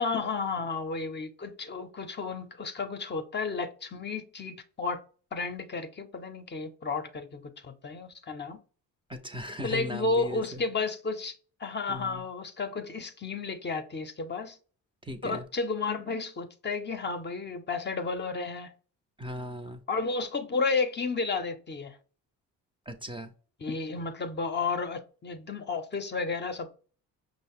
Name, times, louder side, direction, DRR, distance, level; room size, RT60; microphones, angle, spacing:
voice 1, 0.0-5.0 5.3-8.6 9.6-14.6 15.2-18.7 19.9-22.0 23.6-26.7, left 4 dB, 30° left, 0.6 m, -32 dB
voice 2, 9.1-10.6 11.9-12.2 15.0-15.5 19.2-19.8 22.9-23.3, equal, 15° right, 0.5 m, -38 dB
5.4 x 2.0 x 3.5 m
supercardioid pair, 65°, 34 cm